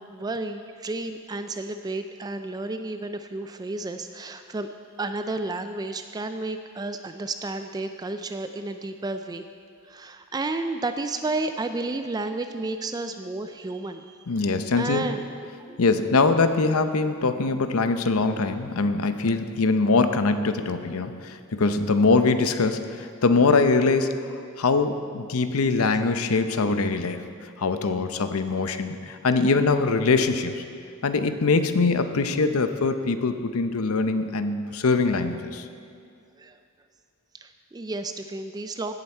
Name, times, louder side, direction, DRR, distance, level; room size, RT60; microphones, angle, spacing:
voice 1, 0.0-4.7 5.0-9.4 9.8-14.5 14.7-15.2 15.7-15.8 36.4-36.6 37.3-38.9, right 2 dB, 20° right, 8 dB, 0.3 m, -32 dB
voice 2, 14.3-15.1 15.8-24.1 24.6-27.2 27.6-30.6 31.0-35.6, left 3 dB, 75° left, 9 dB, 0.7 m, -23 dB
16.5 x 7.9 x 4.4 m, 2.3 s
head